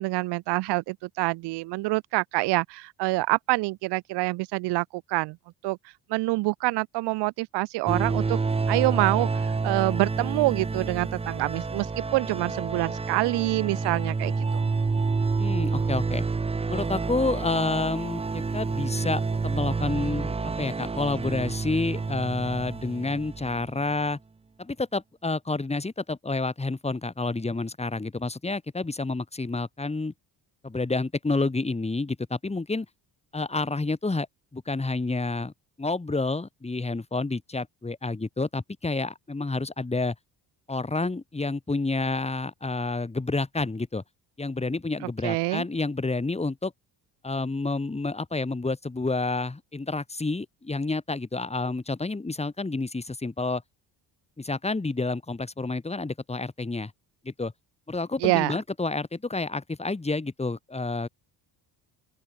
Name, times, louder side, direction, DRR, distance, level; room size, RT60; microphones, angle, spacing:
voice 1, 0.0-5.4 5.6-5.8 6.1-8.4 8.7-14.6 45.2-45.6 58.2-58.5, right 22 dB, 70° right, 0.5 m, -26 dB
sound 1, 7.9-23.8, right 4 dB, 15° right, 0.6 m, -29 dB
voice 2, 15.4-16.3 16.7-24.2 24.6-30.1 30.6-32.9 33.3-34.3 34.5-35.5 35.8-40.1 40.7-44.0 44.4-46.7 47.2-53.6 54.4-56.9 57.2-57.5 57.9-61.1, left 3 dB, 15° left, 2.2 m, -29 dB
open air
cardioid pair, 85°, 42 cm